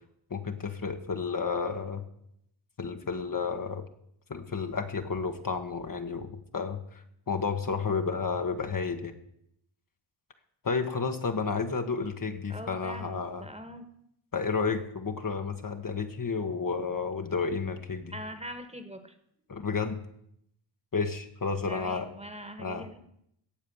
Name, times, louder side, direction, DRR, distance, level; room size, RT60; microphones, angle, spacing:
voice 1, 0.3-2.0 2.8-3.9 4.3-9.1 10.6-13.4 14.3-18.1 19.5-20.0 20.9-22.1 22.6-22.9, left 5 dB, 40° left, 5 dB, 1.4 m, -31 dB
voice 2, 12.5-13.9 18.1-19.2 21.7-23.0, equal, 15° right, 9 dB, 1.6 m, -42 dB
17.5 x 7.2 x 7.1 m, 0.73 s
cardioid pair, 85°, 49 cm